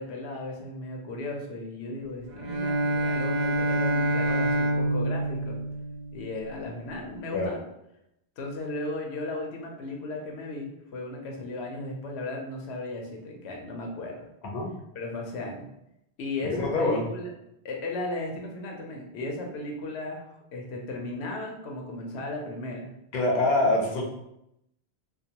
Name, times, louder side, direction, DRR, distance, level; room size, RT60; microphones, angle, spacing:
voice 1, 0.0-5.6 6.1-7.6 8.4-14.3 14.9-15.7 16.2-17.3 17.6-22.9, left 2 dB, 90° left, 1 dB, 0.8 m, -35 dB
Bowed string instrument, 2.3-6.4, right 1 dB, 55° right, 0.5 m, -27 dB
voice 2, 16.5-17.1 23.1-24.0, left 2 dB, 50° left, -1 dB, 0.6 m, -25 dB
2.3 x 2.2 x 2.8 m, 0.82 s
omnidirectional pair, 1.1 m